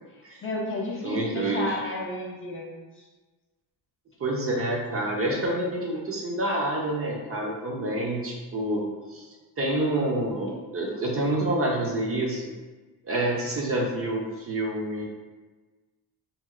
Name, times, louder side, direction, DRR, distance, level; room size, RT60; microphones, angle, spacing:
voice 1, 0.4-3.1 6.5-6.7, left 2 dB, 30° left, -3 dB, 0.4 m, -32 dB
voice 2, 1.0-1.7 4.2-8.8 9.1-9.3 9.6-12.4 13.0-15.0, right 1 dB, 35° right, -2 dB, 0.4 m, -27 dB
2.9 x 2.7 x 2.4 m, 1.3 s
cardioid pair, 115°, 44 cm